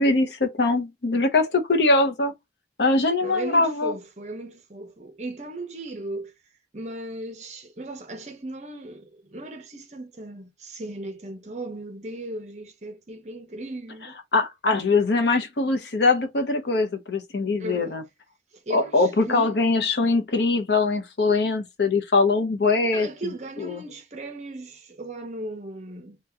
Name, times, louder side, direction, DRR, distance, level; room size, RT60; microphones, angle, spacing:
voice 1, 0.0-2.3 2.8-3.9 14.3-18.0 18.7-23.1 23.6-23.8, left 3 dB, 70° left, 0.7 m, -22 dB
voice 2, 3.2-6.3 6.7-14.2 17.6-18.0 18.5-19.6 22.9-26.2, right 1 dB, 40° right, 0.8 m, -37 dB
2.9 x 2.8 x 3.5 m
head